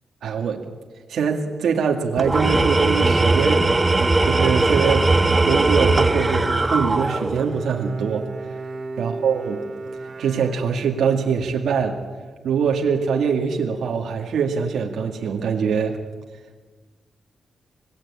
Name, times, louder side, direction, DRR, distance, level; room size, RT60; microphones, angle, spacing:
voice 1, 0.2-0.6 1.1-3.7 4.2-5.1 5.4-8.3 9.0-9.6 10.2-12.0 12.4-16.0, right 6 dB, 85° right, 1 dB, 2.2 m, -23 dB
Tools, 2.2-7.5, right 2 dB, 20° right, 1.8 m, -19 dB
Bowed string instrument, 6.8-11.2, right 3 dB, 40° right, 1.5 m, -34 dB
26.0 x 19.5 x 8.8 m, 1.4 s
cardioid pair, 95°, 0 cm